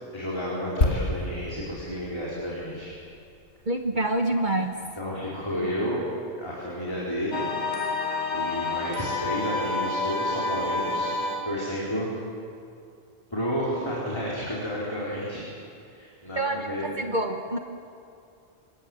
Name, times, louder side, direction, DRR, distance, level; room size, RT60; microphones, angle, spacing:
voice 1, 0.1-2.9 5.0-6.1 6.4-7.5 8.3-11.1 11.4-12.1 13.3-15.4 15.9-16.9, equal, 25° left, -6 dB, 4.5 m, -31 dB
sound 1, 0.8-4.5 4.7-4.9, left 2 dB, 85° left, 2.2 m, -30 dB
voice 2, 3.7-4.8 5.6-5.7 16.4-17.6, right 1 dB, 45° right, 5 dB, 1.3 m, -27 dB
sound 2, 7.3-11.6, left 3 dB, 40° left, 2.3 m, -29 dB
26.0 x 21.0 x 8.1 m, 2.4 s
omnidirectional pair, 1.2 m